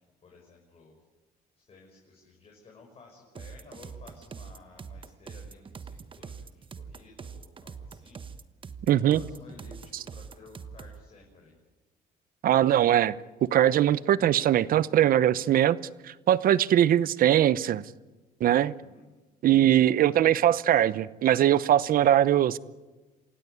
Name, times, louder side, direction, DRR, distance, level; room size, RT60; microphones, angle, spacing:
voice 1, 0.2-1.0 1.6-8.2 8.9-11.6 18.5-19.1 20.0-20.8, left 3 dB, 35° left, 6.2 m, -54 dB
sound 1, 3.4-11.0, right 5 dB, 30° right, 1.2 m, -43 dB
voice 2, 8.9-9.2 12.4-13.1 13.5-15.8 16.3-17.8 18.4-18.7 19.4-22.6, right 11 dB, 60° right, 0.9 m, -21 dB
27.5 x 16.5 x 9.7 m
cardioid pair, 110°, 17 cm